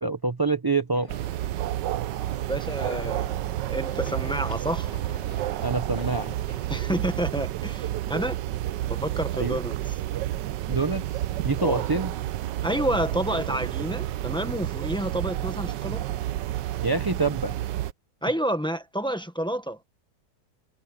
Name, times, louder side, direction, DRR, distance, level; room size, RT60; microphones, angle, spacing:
voice 1, 0.0-1.1 5.6-6.4 9.4-9.6 10.7-11.1 11.4-12.1 16.8-17.6, right 3 dB, 30° right, 0.4 m, -26 dB
sound 1, 0.9-8.0, left 4 dB, 80° left, 4.5 m, -47 dB
sound 2, 1.1-17.9, right 13 dB, 80° right, 1.3 m, -30 dB
voice 2, 2.5-4.9 6.7-8.4 8.9-9.7 11.6-11.8 12.6-16.1 18.2-19.8, right 1 dB, 5° left, 1.0 m, -29 dB
omnidirectional pair, 1.9 m